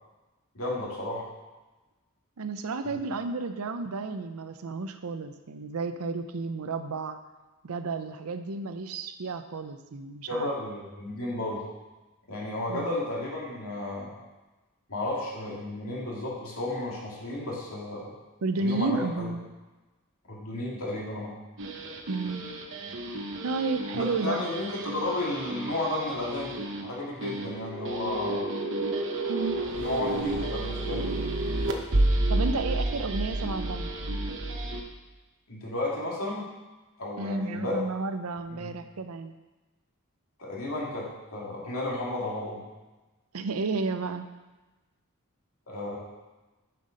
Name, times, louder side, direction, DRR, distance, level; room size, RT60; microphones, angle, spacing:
voice 1, 0.5-1.2 2.9-3.0 10.3-11.7 12.3-14.1 14.9-18.1 18.6-19.3 20.3-21.3 23.9-26.5 26.8-28.5 29.8-31.2 35.5-36.5 37.0-37.8 38.5-38.7 40.4-42.6 45.7-46.0, left 1 dB, 70° left, -5 dB, 2.5 m, -33 dB
voice 2, 2.4-7.2 7.6-10.5 12.7-13.0 18.4-19.5 22.1-22.5 23.4-24.4 29.3-29.6 32.3-33.9 37.2-39.3 43.3-44.3, right 3 dB, 85° right, 9 dB, 0.6 m, -32 dB
sound 1, 21.6-34.8, right 1 dB, 60° right, 1.0 m, -31 dB
7.6 x 5.7 x 5.1 m, 1.1 s
head